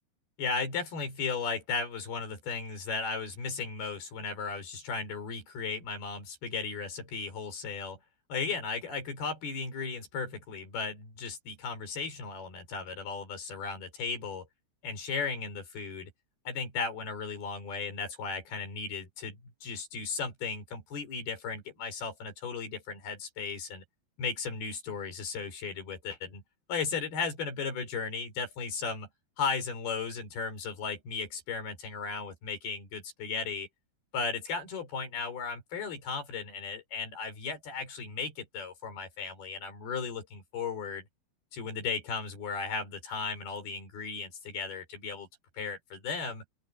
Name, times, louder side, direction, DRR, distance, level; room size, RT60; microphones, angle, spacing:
voice 1, 0.4-8.0 8.3-14.5 14.8-16.1 16.5-23.8 24.2-26.4 26.7-29.1 29.4-33.7 34.1-41.0 41.5-45.3 45.5-46.4, left 5 dB, 65° left, 7.6 m, -35 dB
open air
omnidirectional pair, 4.9 m